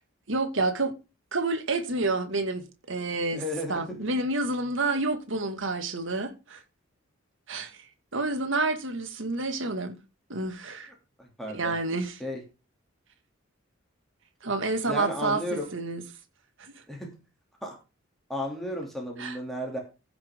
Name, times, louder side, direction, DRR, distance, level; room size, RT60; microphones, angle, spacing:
voice 1, 0.3-0.9 1.3-3.4 3.7-6.6 7.5-7.8 8.1-10.0 10.3-10.9 11.5-12.2 14.4-16.0 16.6-16.7 19.2-19.4, right 3 dB, 70° right, 2.1 m, -29 dB
voice 2, 3.3-4.1 11.2-11.7 12.2-12.4 14.9-15.6 16.9-17.1 17.6-17.7 18.3-19.8, left 1 dB, ahead, 2.9 m, -33 dB
15.5 x 6.0 x 3.7 m
head